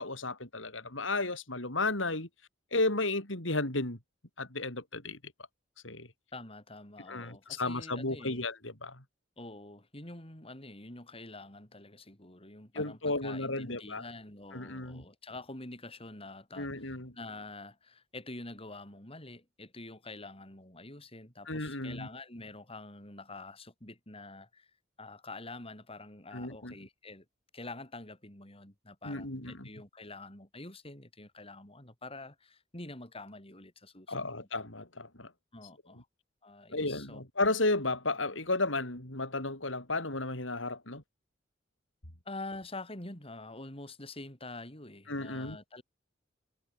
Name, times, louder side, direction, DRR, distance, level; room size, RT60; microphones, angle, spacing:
voice 1, 0.0-2.3 2.7-4.0 4.4-5.2 5.8-6.1 7.1-9.0 12.7-14.0 14.5-15.0 16.6-17.1 21.5-22.1 26.3-26.7 29.0-29.7 34.1-35.3 36.7-41.0 45.1-45.6, left 2 dB, 90° left, 6.7 m, -33 dB
voice 2, 6.3-8.4 9.4-24.7 25.0-27.2 27.5-34.4 35.5-36.1 36.4-37.2 42.2-45.8, left 2 dB, 30° left, 6.4 m, -46 dB
head